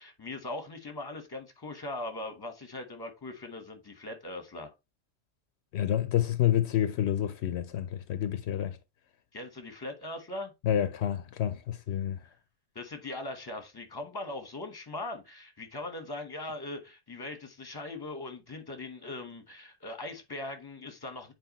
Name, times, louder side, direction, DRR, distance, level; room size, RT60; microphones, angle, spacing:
voice 1, 0.0-4.7 9.3-10.5 12.7-21.3, left 2 dB, 20° left, 1.3 m, -40 dB
voice 2, 5.7-8.8 10.6-12.2, left 10 dB, 75° left, 0.9 m, -28 dB
7.8 x 4.6 x 3.0 m
omnidirectional pair, 1.1 m